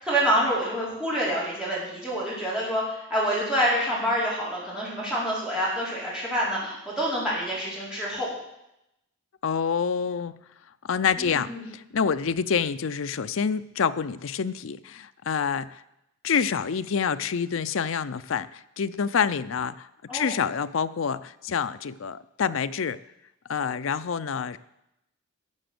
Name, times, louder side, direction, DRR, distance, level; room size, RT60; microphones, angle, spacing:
voice 1, 0.0-8.3 11.2-11.7 20.1-20.4, equal, 5° right, -8 dB, 4.4 m, -27 dB
voice 2, 9.4-10.3 10.8-15.8 16.2-19.9 20.1-23.0 23.5-24.6, left 6 dB, 70° left, 13 dB, 0.5 m, -27 dB
12.0 x 7.0 x 7.7 m, 0.86 s
head